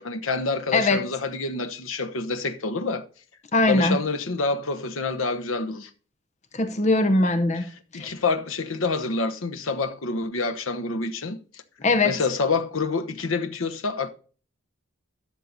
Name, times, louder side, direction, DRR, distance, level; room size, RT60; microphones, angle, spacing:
voice 1, 0.0-3.0 3.7-5.9 7.5-7.6 7.9-11.4 12.0-14.1, left 3 dB, 80° left, 1.0 m, -27 dB
voice 2, 3.5-4.0 6.5-7.6 7.9-8.1 11.8-12.1, left 2 dB, 35° left, 0.7 m, -21 dB
12.5 x 6.5 x 4.0 m
head